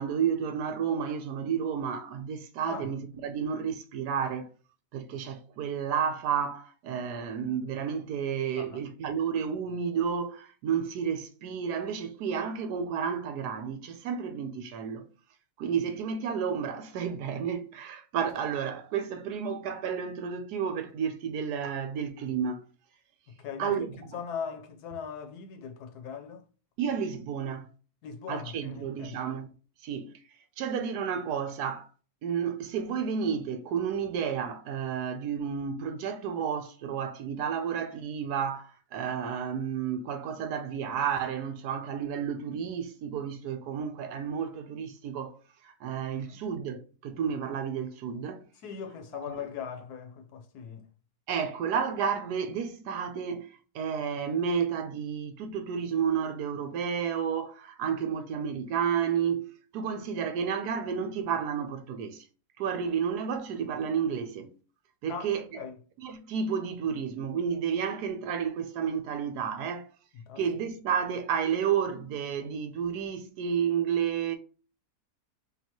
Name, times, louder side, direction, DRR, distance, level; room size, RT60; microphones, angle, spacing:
voice 1, 0.0-4.5 4.9-15.1 15.6-22.6 23.6-23.9 26.8-27.7 28.3-29.5 29.8-30.1 30.6-31.9 32.2-45.4 45.6-48.4 49.3-49.4 51.3-62.2 62.6-64.5 65.0-65.6 66.0-69.9 70.4-74.4, right 7 dB, 80° right, 1.2 m, -31 dB
voice 2, 23.4-26.4 28.0-29.2 46.3-46.4 48.6-50.8 65.1-65.8 70.1-70.4, left 7 dB, 80° left, 1.3 m, -40 dB
5.4 x 2.4 x 2.9 m
omnidirectional pair, 1.7 m